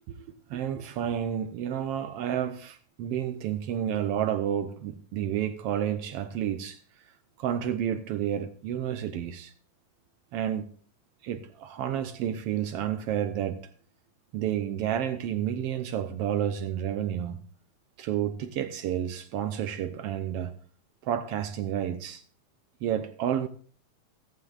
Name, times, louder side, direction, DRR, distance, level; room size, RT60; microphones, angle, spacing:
voice 1, 0.5-6.8 7.4-9.5 10.3-10.7 11.2-13.7 14.3-17.4 18.0-20.6 21.0-22.2 22.8-23.5, right 10 dB, 75° right, 1.4 m, -30 dB
15.0 x 14.5 x 2.4 m
omnidirectional pair, 3.3 m